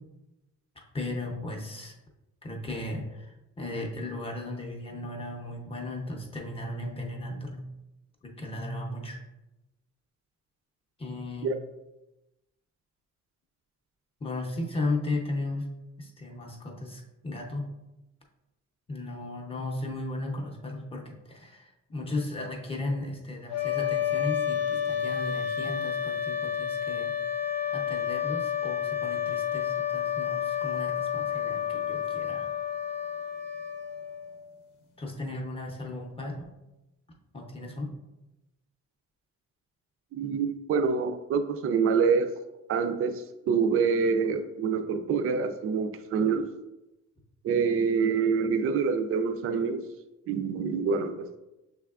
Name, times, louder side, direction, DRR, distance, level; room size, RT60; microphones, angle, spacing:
voice 1, 0.9-1.9 2.4-7.6 8.2-9.2 11.0-11.5 14.2-15.7 16.0-17.7 18.9-27.1 27.7-32.5 35.0-36.5 37.3-37.9, left 2 dB, 20° left, -1 dB, 0.6 m, -35 dB
sound 1, 23.5-34.4, left 9 dB, 90° left, 0.8 m, -30 dB
voice 2, 40.1-42.3 42.7-46.5 47.4-49.8 50.3-51.4, right 5 dB, 45° right, 9 dB, 0.4 m, -26 dB
6.4 x 3.4 x 2.4 m, 0.98 s
cardioid pair, 160°, 31 cm